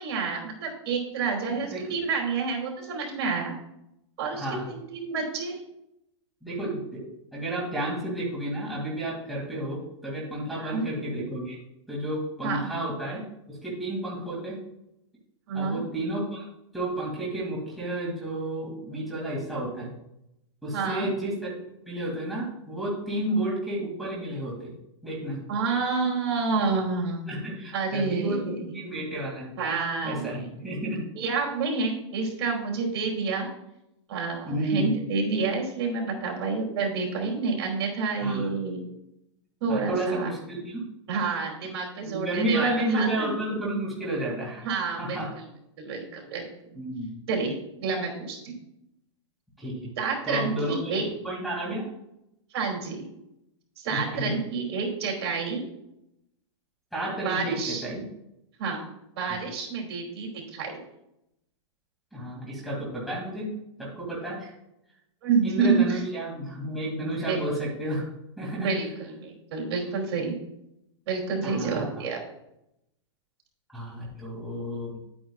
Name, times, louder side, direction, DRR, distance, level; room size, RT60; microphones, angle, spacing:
voice 1, 0.0-3.5 4.2-5.6 10.5-10.8 12.4-12.7 15.5-15.8 20.7-21.1 25.5-27.2 27.7-28.8 29.6-30.4 31.2-33.5 34.1-38.8 39.6-40.3 41.1-43.3 44.6-45.2 45.8-46.8 47.3-48.5 50.0-51.0 52.5-53.1 53.8-55.7 57.2-57.8 58.6-58.8 59.2-60.7 65.2-66.0 67.0-67.5 68.5-70.3 71.1-72.2, right 4 dB, 60° right, 0 dB, 2.8 m, -29 dB
voice 2, 1.5-1.9 4.3-4.7 6.4-11.6 11.9-13.2 13.5-14.6 15.5-16.4 16.7-19.9 20.6-21.5 21.8-24.7 25.0-25.4 27.3-29.6 30.0-31.0 34.4-34.9 38.2-38.5 39.7-40.9 41.3-41.4 42.0-44.7 45.0-45.3 46.8-47.1 49.6-49.9 50.3-51.0 51.2-51.9 53.9-54.3 56.9-58.0 62.1-63.5 63.8-64.5 65.4-68.1 68.4-68.7 71.4-72.0 73.7-75.0, right 1 dB, ahead, -6 dB, 2.4 m, -31 dB
11.0 x 8.6 x 2.4 m, 0.82 s
supercardioid pair, 150°, 16 cm